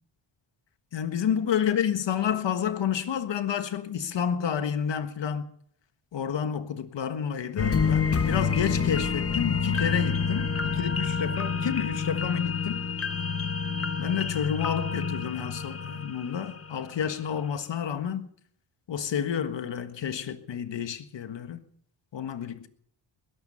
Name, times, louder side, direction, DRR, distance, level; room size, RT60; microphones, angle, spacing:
voice 1, 0.9-5.5 6.1-12.9 14.0-18.3 18.9-21.6 22.1-22.7, left 8 dB, 65° left, 1.6 m, -30 dB
sound 1, 7.6-16.9 17.3-17.4, left 5 dB, 30° left, 1.0 m, -28 dB
20.5 x 11.5 x 5.6 m
cardioid pair, 105°, 47 cm